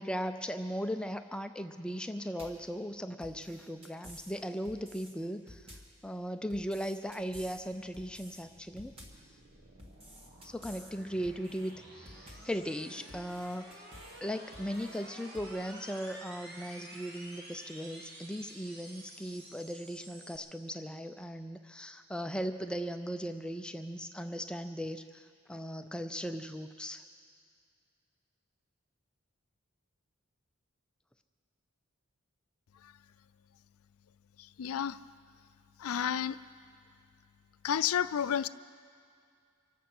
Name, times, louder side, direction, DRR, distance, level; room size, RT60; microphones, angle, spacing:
voice 1, 0.0-8.9 10.4-13.9 14.2-27.0, equal, 5° left, 8 dB, 0.3 m, -38 dB
sound 1, 2.4-2.7 3.2-4.3 4.6-5.1 5.5-6.0 6.5-7.6 7.9-8.4 8.8-9.3 9.8-10.9 11.2-11.7 12.1-12.6 13.1-14.2 14.5-15.0 15.3-15.5, equal, 25° right, 1.8 m, -52 dB
sound 2, 7.0-20.4, right 1 dB, 45° right, 1.6 m, -52 dB
voice 2, 34.4-35.0 35.8-36.4 37.6-38.5, left 9 dB, 80° left, 15 dB, 0.4 m, -31 dB
24.5 x 8.3 x 6.0 m, 2.3 s
head